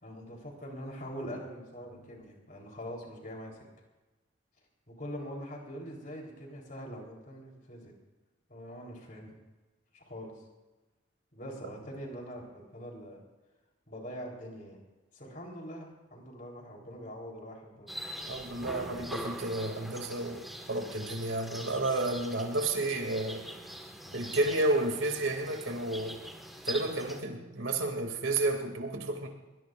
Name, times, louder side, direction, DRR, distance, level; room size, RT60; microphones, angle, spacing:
voice 1, 0.0-3.6 4.9-7.9 8.5-9.3 9.9-10.4 11.3-13.2 13.9-14.8 15.1-17.9 24.0-24.1, equal, 45° left, -1 dB, 3.9 m, -43 dB
sound 1, 17.9-27.2, equal, ahead, 1.6 m, -43 dB
voice 2, 18.3-23.4 24.1-26.2 26.6-29.3, right 2 dB, 90° right, 3 dB, 2.7 m, -31 dB
22.0 x 20.0 x 2.6 m, 1.2 s
head